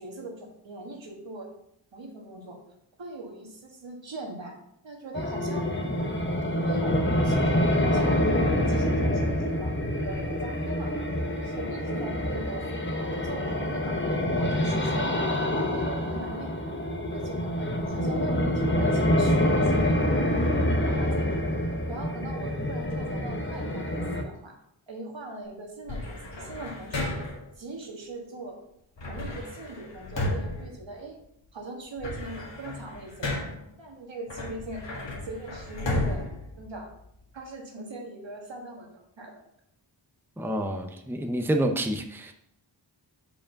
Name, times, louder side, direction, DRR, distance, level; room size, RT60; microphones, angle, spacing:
voice 1, 0.0-1.5 1.9-2.6 3.0-4.6 4.8-5.7 6.5-10.9 11.3-12.9 13.2-15.1 15.5-16.5 17.1-20.2 20.9-21.5 21.9-24.6 24.9-27.1 27.6-28.6 29.1-31.2 31.5-33.3 33.8-34.8 35.2-36.3 36.6-36.9 37.3-38.9 39.2-39.3, right 2 dB, 75° right, 1 dB, 1.7 m, -40 dB
sound 1, 5.2-24.2, left 1 dB, 25° left, 0.8 m, -26 dB
sound 2, 25.9-27.5 29.0-31.4 31.8-33.7 34.3-37.3, left 1 dB, 70° left, 1.8 m, -34 dB
voice 2, 40.4-42.3, right 1 dB, 5° right, 4 dB, 0.7 m, -28 dB
5.0 x 4.9 x 5.7 m, 0.75 s
wide cardioid pair, 65°, 45 cm